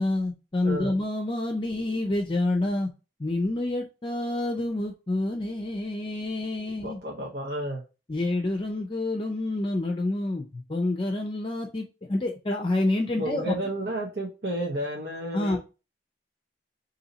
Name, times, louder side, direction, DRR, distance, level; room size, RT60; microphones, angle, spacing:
voice 1, 0.0-2.9 3.2-7.0 8.1-13.5 15.3-15.6, left 2 dB, 30° left, 0.5 m, -28 dB
voice 2, 0.6-1.0 6.8-7.8 13.2-15.6, right 1 dB, 70° right, 0.9 m, -31 dB
4.0 x 2.8 x 3.9 m
head